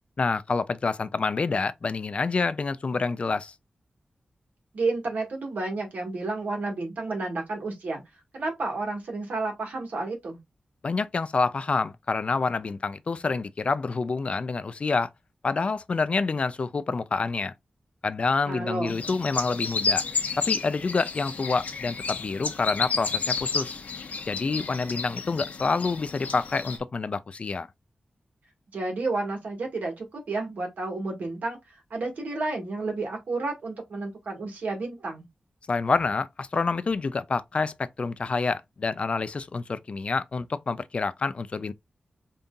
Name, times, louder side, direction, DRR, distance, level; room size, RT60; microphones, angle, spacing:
voice 1, 0.2-3.5 10.8-15.1 15.4-17.5 18.0-20.0 20.4-23.8 24.3-27.7 35.7-41.7, left 4 dB, 45° left, 0.4 m, -27 dB
voice 2, 4.7-8.0 8.3-10.4 18.5-19.0 28.7-35.2, right 3 dB, 90° right, 1.6 m, -31 dB
sound 1, 18.9-26.8, left 4 dB, 80° left, 0.8 m, -31 dB
5.2 x 2.7 x 2.3 m
wide cardioid pair, 120°, 3 cm